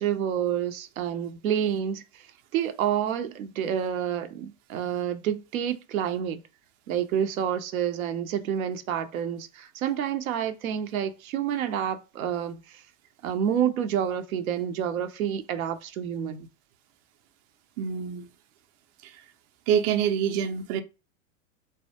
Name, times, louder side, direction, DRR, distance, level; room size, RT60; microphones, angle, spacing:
voice 1, 0.0-2.0 2.5-6.4 6.9-12.6 13.2-16.5, right 9 dB, 90° right, 0.6 m, -28 dB
voice 2, 17.8-18.3 19.0-19.2 19.7-20.8, right 8 dB, 40° right, 0.5 m, -26 dB
2.1 x 2.1 x 2.8 m
hypercardioid pair, 115°, 40 cm